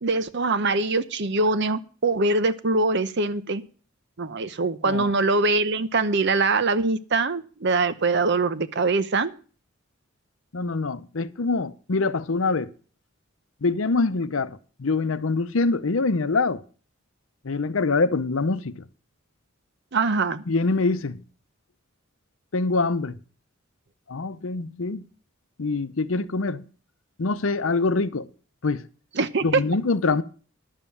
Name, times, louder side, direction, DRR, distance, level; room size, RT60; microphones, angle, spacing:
voice 1, 0.0-3.6 4.2-9.3 19.9-20.4 29.2-29.6, right 3 dB, 60° right, 0.8 m, -23 dB
voice 2, 10.5-12.7 13.6-16.6 17.4-18.8 20.5-21.2 22.5-23.2 24.1-25.0 25.6-26.6 27.2-28.3 28.6-28.8 29.4-30.2, left 3 dB, 75° left, 0.7 m, -24 dB
11.0 x 7.5 x 7.0 m
head